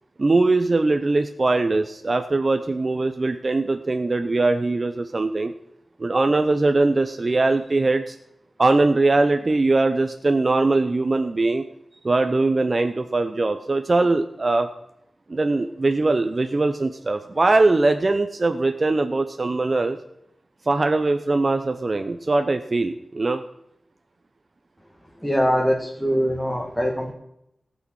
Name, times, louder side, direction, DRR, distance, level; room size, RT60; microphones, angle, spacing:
voice 1, 0.2-5.5 6.0-8.2 8.6-11.6 12.0-14.7 15.3-20.0 20.7-23.4, right 2 dB, 40° right, 7 dB, 0.8 m, -21 dB
voice 2, 25.2-27.1, equal, ahead, -1 dB, 2.0 m, -22 dB
17.5 x 6.4 x 6.4 m, 0.80 s
wide cardioid pair, 95°, 0 cm